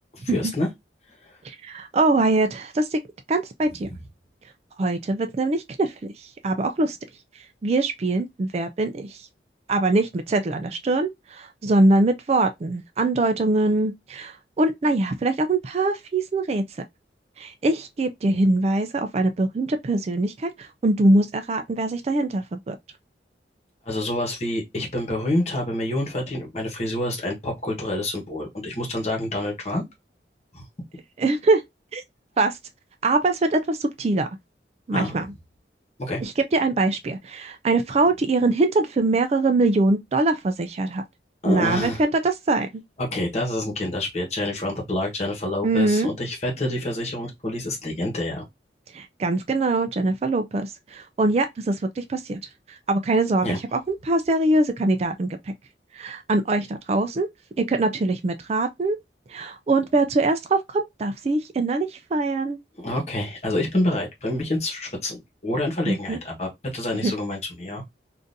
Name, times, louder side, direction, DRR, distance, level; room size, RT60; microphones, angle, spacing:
voice 1, 0.1-0.7 1.3-1.4 3.9-4.0 23.8-29.8 30.5-30.6 34.9-35.1 36.0-36.2 41.4-42.0 43.0-48.5 53.4-53.6 62.8-67.8, left 1 dB, 35° left, 1.1 m, -27 dB
voice 2, 1.4-3.0 3.3-3.9 4.8-7.0 7.6-9.3 9.7-16.6 17.4-22.8 31.2-31.6 31.9-32.0 32.4-32.6 33.0-34.3 34.9-35.3 36.2-41.0 41.5-42.8 45.6-46.1 48.9-52.4 52.7-55.5 55.9-57.3 57.6-59.0 59.3-62.6 65.9-66.2 67.0-67.1, right 2 dB, 35° right, 0.3 m, -23 dB
3.7 x 2.5 x 2.6 m
head